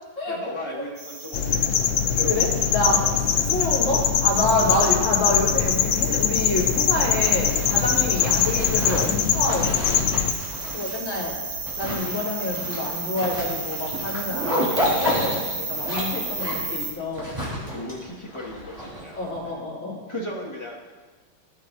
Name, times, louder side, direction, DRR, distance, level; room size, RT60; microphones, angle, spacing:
voice 1, 0.3-1.6 2.1-2.6 2.9-3.2 4.4-4.6 7.8-8.0 10.1-10.4 17.7-19.2 19.4-19.6 20.1-20.8, left 1 dB, 15° left, -3 dB, 1.8 m, -36 dB
sound 1, 1.0-16.9, right 4 dB, 80° right, 2.8 m, -34 dB
sound 2, 1.3-10.3, left 8 dB, 70° left, 1.1 m, -22 dB
voice 2, 2.3-3.0 3.5-9.8 10.7-11.3 11.8-17.3 19.2-20.0, left 2 dB, 35° left, -7 dB, 4.0 m, -27 dB
Zipper (clothing), 6.9-19.4, equal, 15° right, 4.2 m, -31 dB
18.0 x 9.0 x 2.8 m, 1.3 s
omnidirectional pair, 2.4 m